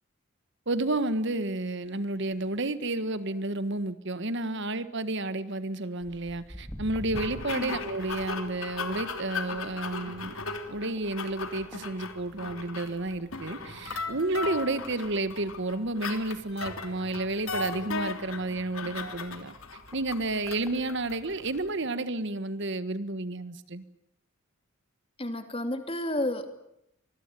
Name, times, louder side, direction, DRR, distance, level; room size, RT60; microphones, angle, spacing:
voice 1, 0.7-10.3 10.7-19.5 19.9-23.8, right 2 dB, 55° right, 13 dB, 1.5 m, -31 dB
Walk footsteps, 6.0-12.7 13.0-13.3 13.9-14.0 14.7-14.8 15.2-15.3 15.4-15.5 16.1-16.3 16.9-18.5 19.1-19.2 19.9-20.0 20.4-20.7 21.4-21.5, equal, ahead, 2.6 m, -46 dB
sound 1, 7.1-21.7, left 4 dB, 75° left, 3.2 m, -37 dB
voice 2, 25.2-26.5, left 1 dB, 25° left, 8 dB, 2.7 m, -31 dB
25.5 x 21.0 x 9.1 m, 0.79 s
head